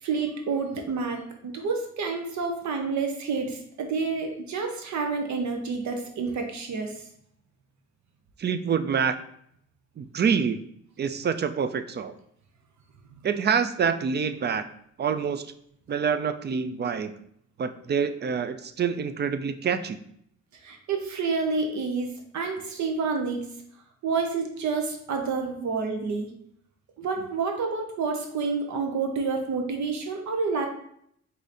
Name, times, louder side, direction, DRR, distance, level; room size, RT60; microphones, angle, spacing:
voice 1, 0.0-7.0 13.1-13.2 20.5-23.4 24.0-26.3 27.0-30.7, right 4 dB, 70° right, 4 dB, 0.7 m, -29 dB
voice 2, 8.4-9.1 10.0-10.6 11.0-12.2 13.2-14.6 15.0-15.5 15.9-17.1 17.6-20.0, right 6 dB, 35° right, 11 dB, 0.4 m, -26 dB
4.7 x 2.7 x 4.1 m, 0.69 s
cardioid pair, 85°, 30 cm